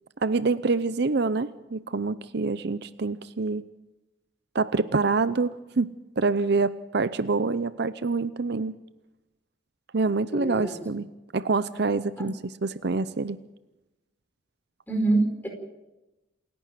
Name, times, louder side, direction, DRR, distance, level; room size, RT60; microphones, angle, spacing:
voice 1, 0.2-3.6 4.5-8.8 9.9-11.1 11.3-12.3 12.6-13.4, right 3 dB, 65° right, 14 dB, 0.7 m, -26 dB
voice 2, 10.3-10.8 12.2-12.3 14.9-15.5, right 2 dB, 10° left, 3 dB, 4.7 m, -26 dB
28.0 x 11.0 x 9.3 m, 1.0 s
head